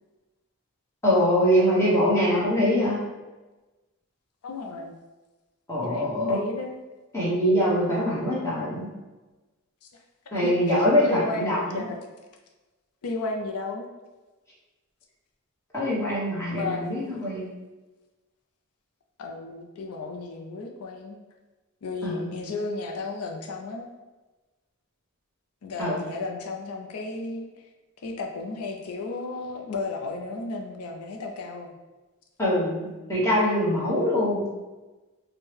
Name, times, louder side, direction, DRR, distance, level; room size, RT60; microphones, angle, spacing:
voice 1, 1.0-3.0 5.7-6.4 7.1-8.9 10.3-11.9 15.7-17.5 22.0-22.3 25.8-26.1 32.4-34.5, equal, 15° left, -8 dB, 1.0 m, -23 dB
voice 2, 4.4-4.9 5.8-6.7 10.3-12.0 13.0-13.9 16.6-16.9 19.2-21.2 21.8-23.9 25.6-27.7 28.0-31.7, left 3 dB, 90° left, 2 dB, 0.4 m, -34 dB
4.4 x 2.1 x 3.2 m, 1.2 s
head